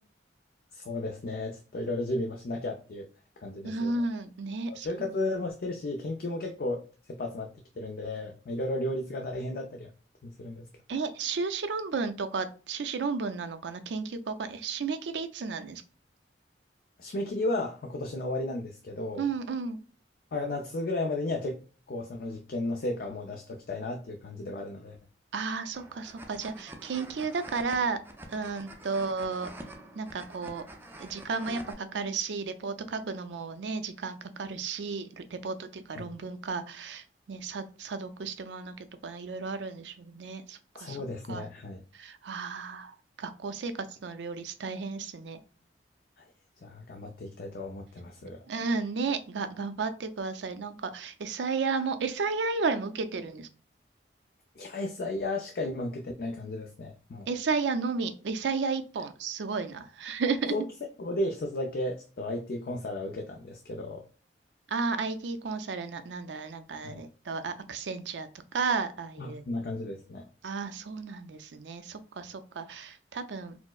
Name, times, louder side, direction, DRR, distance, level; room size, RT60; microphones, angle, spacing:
voice 1, 0.7-3.1 3.4-4.0 4.7-9.9 10.2-10.7 17.0-19.2 20.3-21.6 21.9-25.0 35.9-36.1 40.8-41.8 46.2-46.3 46.6-48.4 54.6-57.3 60.5-60.6 61.0-64.0 66.8-67.0 69.2-70.3, left 2 dB, 55° left, 2 dB, 0.4 m, -34 dB
voice 2, 3.6-4.9 10.9-15.8 19.2-19.8 25.3-28.0 28.3-29.5 29.9-30.6 31.0-41.0 41.3-41.4 41.9-45.4 48.5-53.5 57.3-60.5 64.7-69.4 70.4-73.6, right 4 dB, 80° right, 10 dB, 0.5 m, -33 dB
sound 1, 25.7-31.7, right 1 dB, 10° right, 0.3 m, -47 dB
4.3 x 2.0 x 2.3 m, 0.37 s
head